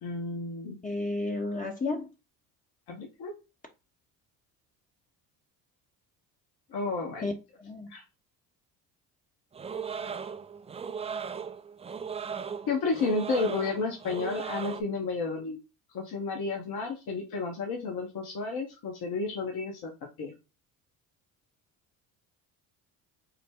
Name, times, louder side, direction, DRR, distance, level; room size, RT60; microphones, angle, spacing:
voice 1, 0.0-0.8 2.9-3.3 6.7-7.3 7.9-8.0 12.6-15.6 15.9-19.9 20.2-20.3, left 3 dB, 55° left, 1.1 m, -32 dB
voice 2, 0.8-2.1 7.2-7.3 7.6-7.9, left 2 dB, 20° left, 0.7 m, -32 dB
sound 1, 9.5-14.8, right 6 dB, 15° right, 0.3 m, -37 dB
3.9 x 2.1 x 3.5 m
hypercardioid pair, 65°, 46 cm